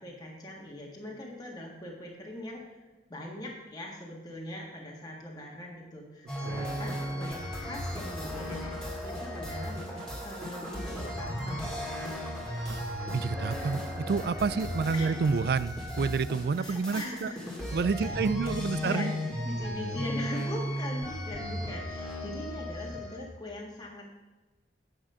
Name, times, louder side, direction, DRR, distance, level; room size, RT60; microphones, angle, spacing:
voice 1, 0.0-2.8 3.1-12.4 14.9-15.2 16.6-17.6 17.9-24.1, left 1 dB, 20° left, -2 dB, 1.7 m, -41 dB
sound 1, 6.3-23.2, equal, 5° left, 2.1 m, -35 dB
voice 2, 13.1-17.3 17.7-19.1, right 5 dB, 55° right, 17 dB, 0.3 m, -29 dB
9.0 x 7.3 x 5.6 m, 1.2 s
head